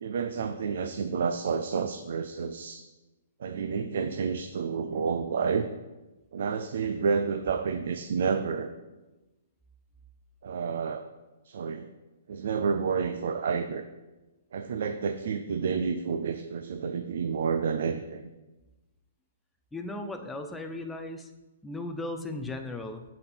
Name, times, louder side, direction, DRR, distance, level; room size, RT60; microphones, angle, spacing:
voice 1, 0.0-2.8 3.4-5.7 6.3-8.7 10.4-11.1 11.4-11.9 12.3-13.9 14.5-18.3, right 6 dB, 60° right, 8 dB, 0.4 m, -30 dB
voice 2, 19.7-21.3 21.6-23.0, left 2 dB, 5° left, 5 dB, 0.5 m, -36 dB
9.7 x 4.2 x 4.3 m, 1.1 s
hypercardioid pair, 165°, 0 cm